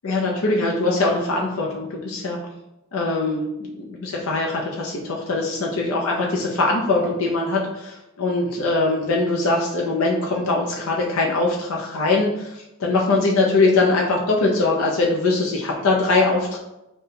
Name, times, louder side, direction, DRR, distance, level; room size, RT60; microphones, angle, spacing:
voice 1, 0.0-2.4 2.9-16.6, left 3 dB, 80° left, -1 dB, 0.5 m, -22 dB
5.3 x 2.2 x 2.7 m, 0.94 s
head